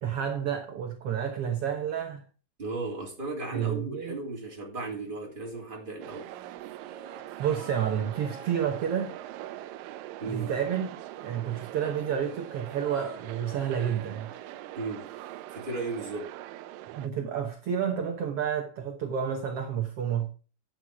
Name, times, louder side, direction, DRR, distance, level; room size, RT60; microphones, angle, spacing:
voice 1, 0.0-2.2 3.5-4.1 7.4-9.1 10.3-14.3 16.9-20.3, right 8 dB, 60° right, 1.6 m, -30 dB
voice 2, 2.6-6.3 10.2-10.5 14.8-15.1 15.5-16.3, right 3 dB, 15° right, 2.8 m, -35 dB
sound 1, 6.0-17.1, right 14 dB, 80° right, 2.3 m, -42 dB
sound 2, 6.1-10.9 11.1-15.5 15.7-15.8, right 3 dB, 35° right, 2.1 m, -50 dB
9.7 x 8.0 x 4.8 m
omnidirectional pair, 4.0 m